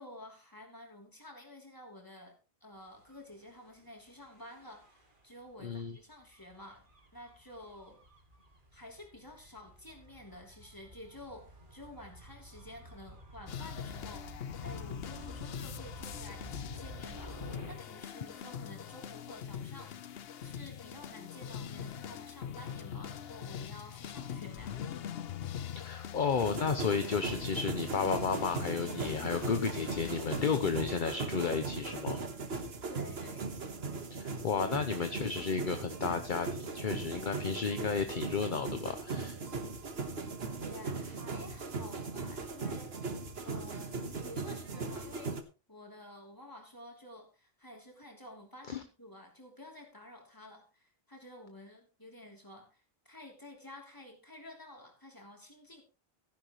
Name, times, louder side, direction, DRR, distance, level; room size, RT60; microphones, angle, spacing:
voice 1, 0.0-6.9 7.1-8.0 8.7-20.0 20.4-24.8 32.9-33.6 40.6-42.9 43.4-45.4 45.7-55.8, left 1 dB, 20° left, 1 dB, 3.2 m, -51 dB
Gull seagull / Waves surf / Siren, 3.0-17.7, right 1 dB, 55° right, 2.4 m, -52 dB
voice 2, 5.6-6.0 25.7-32.2 34.1-39.4 48.7-48.8, left 5 dB, 55° left, 8 dB, 1.0 m, -33 dB
sound 1, 13.5-30.8, left 8 dB, 75° left, 0.9 m, -43 dB
sound 2, 26.4-45.4, right 3 dB, 75° right, 1.6 m, -39 dB
15.5 x 10.5 x 3.1 m, 0.31 s
omnidirectional pair, 1.0 m